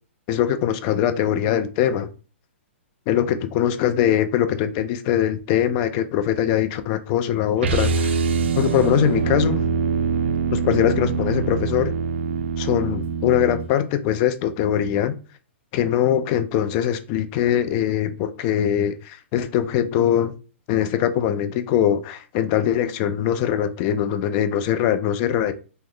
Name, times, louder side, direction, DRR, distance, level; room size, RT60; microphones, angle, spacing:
voice 1, 0.3-2.1 3.1-8.2 8.6-9.6 10.5-11.9 12.6-15.2 15.7-20.3 20.7-25.5, left 10 dB, 35° left, 0.4 m, -22 dB
sound 1, 7.6-13.7, right 5 dB, 60° right, 0.4 m, -24 dB
3.1 x 2.1 x 3.7 m
hypercardioid pair, 135°, 7 cm